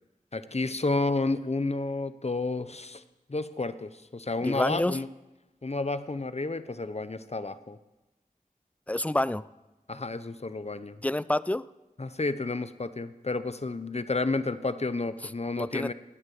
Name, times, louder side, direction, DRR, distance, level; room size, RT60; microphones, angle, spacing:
voice 1, 0.3-3.0 3.3-5.1 5.6-7.8 9.9-11.0 12.0-15.9, left 3 dB, 45° left, 13 dB, 0.8 m, -31 dB
voice 2, 4.4-5.0 8.9-9.5 11.0-11.7 15.6-15.9, left 1 dB, 10° left, 18 dB, 0.4 m, -28 dB
19.0 x 8.6 x 6.9 m, 1.0 s
wide cardioid pair, 50°, 15 cm